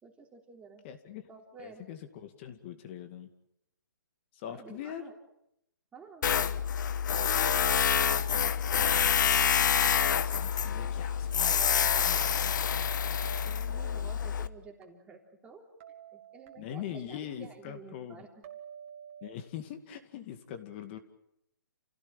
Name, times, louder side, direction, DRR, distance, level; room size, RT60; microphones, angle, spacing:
voice 1, 0.0-0.8 1.3-1.9 4.4-5.2 5.9-6.3 13.4-15.6 16.1-18.3, right 5 dB, 10° right, 2 dB, 3.5 m, -51 dB
voice 2, 0.8-1.2 1.6-3.3 4.3-5.1 10.2-11.8 16.6-18.2 19.2-21.0, left 10 dB, 30° left, 8 dB, 2.3 m, -42 dB
Tools, 6.2-14.5, left 8 dB, 60° left, 1.1 m, -27 dB
sound 1, 11.6-14.8 15.8-17.1 18.4-19.4, right 9 dB, 35° right, 2.8 m, -51 dB
29.0 x 16.5 x 9.1 m, 0.80 s
hypercardioid pair, 155°, 12 cm